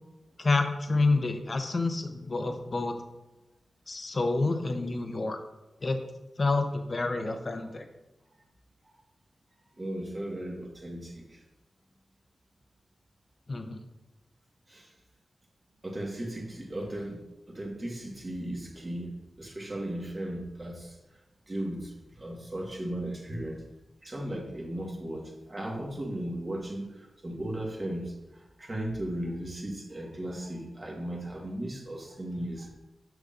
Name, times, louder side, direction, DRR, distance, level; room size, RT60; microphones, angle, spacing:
voice 1, 0.4-3.0 3.9-5.4 5.8-6.0 6.4-7.8 13.5-13.8, left 3 dB, 40° left, 6 dB, 0.7 m, -28 dB
voice 2, 9.8-11.4 14.7-14.9 15.8-17.2 17.5-21.0 21.5-23.6 24.0-32.7, right 1 dB, 30° right, -1 dB, 1.5 m, -36 dB
7.1 x 6.5 x 2.5 m, 1.0 s
wide cardioid pair, 95°, 0 cm